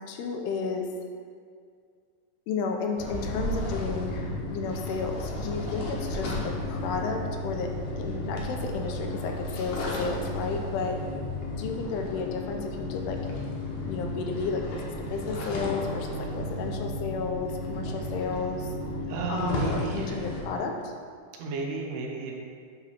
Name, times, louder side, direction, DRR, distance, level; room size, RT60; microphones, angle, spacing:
voice 1, 0.1-0.9 2.5-11.0 11.6-13.2 13.9-18.7 19.3-20.9, left 4 dB, 85° left, 3 dB, 2.8 m, -32 dB
sound 1, 3.0-20.4, left 1 dB, 70° left, 2.1 m, -33 dB
voice 2, 18.9-20.5 21.3-22.3, right 4 dB, 80° right, 0 dB, 2.8 m, -34 dB
8.7 x 3.0 x 5.7 m, 2.1 s
omnidirectional pair, 4.6 m